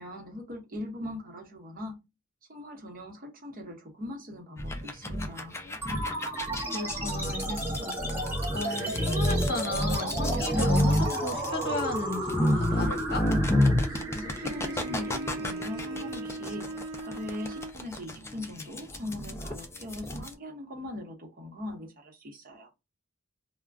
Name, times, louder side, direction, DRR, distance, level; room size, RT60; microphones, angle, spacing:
voice 1, 0.0-2.0 2.5-5.6 13.9-22.7, left 1 dB, 45° right, 0.9 m, -40 dB
sound 1, 4.6-20.3, left 1 dB, 15° left, 0.4 m, -29 dB
sound 2, 5.8-16.8, right 1 dB, 10° right, 0.9 m, -34 dB
voice 2, 6.7-13.2, left 2 dB, 50° left, 1.0 m, -35 dB
Bowed string instrument, 13.9-17.9, right 2 dB, 70° right, 0.3 m, -39 dB
2.4 x 2.1 x 3.4 m
head